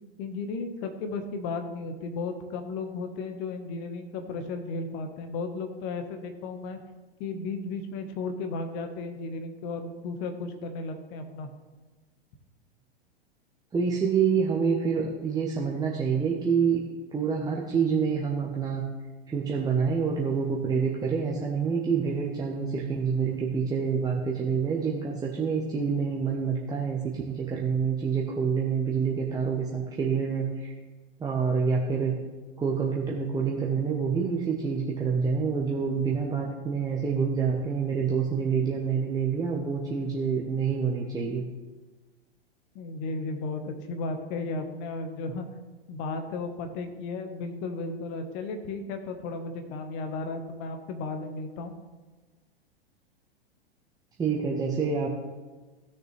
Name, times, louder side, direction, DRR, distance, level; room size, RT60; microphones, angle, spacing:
voice 1, 0.2-6.8 7.2-11.5 42.7-45.4 45.9-51.7, left 3 dB, 35° left, 6 dB, 1.4 m, -34 dB
voice 2, 13.7-16.8 17.1-18.8 19.3-30.7 31.2-32.1 32.6-41.5 54.2-55.2, right 6 dB, 10° right, -3 dB, 1.0 m, -27 dB
16.0 x 6.6 x 3.3 m, 1.3 s
figure-of-eight pair, 100°, 31 cm